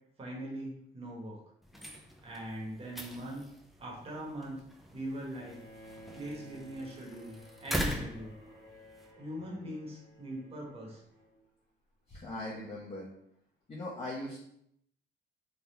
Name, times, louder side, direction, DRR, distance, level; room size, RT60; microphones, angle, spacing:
voice 1, 0.2-1.4 2.2-3.4 3.8-4.6 4.9-5.6 6.1-8.4 9.2-11.0, right 1 dB, 30° right, -3 dB, 1.0 m, -41 dB
sound 1, 1.6-9.1, equal, ahead, 0.4 m, -41 dB
Bowed string instrument, 5.3-11.4, equal, 55° right, 1.3 m, -54 dB
voice 2, 12.1-13.1 13.7-14.5, left 1 dB, 30° left, -6 dB, 0.8 m, -40 dB
3.4 x 2.2 x 2.8 m, 0.71 s
cardioid pair, 90°, 20 cm